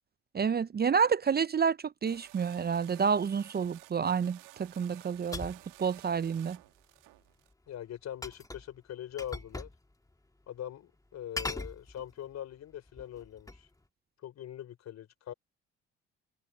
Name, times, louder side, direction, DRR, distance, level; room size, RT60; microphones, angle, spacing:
voice 1, 0.3-6.6, right 6 dB, 30° right, 0.8 m, -29 dB
sound 1, 2.1-7.5, right 20 dB, 75° right, 2.6 m, -54 dB
sound 2, 5.3-5.7 8.2-8.7 9.2-9.8 10.1-10.2 11.4-12.3 12.9-13.7, left 2 dB, 10° left, 1.8 m, -40 dB
voice 2, 7.7-9.7 10.5-13.7 14.2-15.3, left 11 dB, 55° left, 3.6 m, -42 dB
hypercardioid pair, 55°, 31 cm